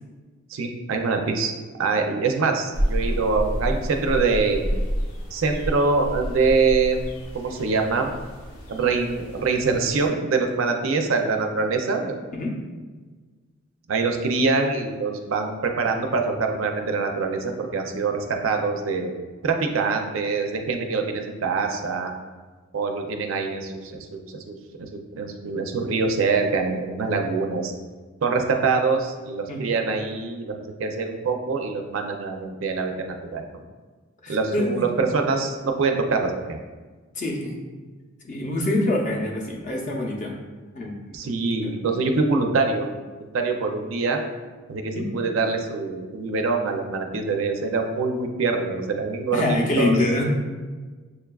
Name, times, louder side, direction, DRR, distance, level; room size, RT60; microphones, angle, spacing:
voice 1, 0.5-1.5 1.8-4.7 5.3-7.0 7.3-8.2 8.7-12.2 13.9-19.1 19.4-22.1 22.7-27.7 28.2-33.6 34.3-36.6 41.1-42.9 43.2-44.2 44.7-50.0, right 4 dB, 65° right, 4 dB, 0.4 m, -24 dB
sound 1, 2.7-10.1, equal, 75° left, 0.8 m, -30 dB
voice 2, 34.2-34.8 37.1-37.5 38.2-40.3 40.7-41.2 41.6-41.7 44.9-45.1 49.3-50.2, left 1 dB, 35° left, -1 dB, 0.6 m, -25 dB
6.4 x 2.3 x 2.2 m, 1.4 s
head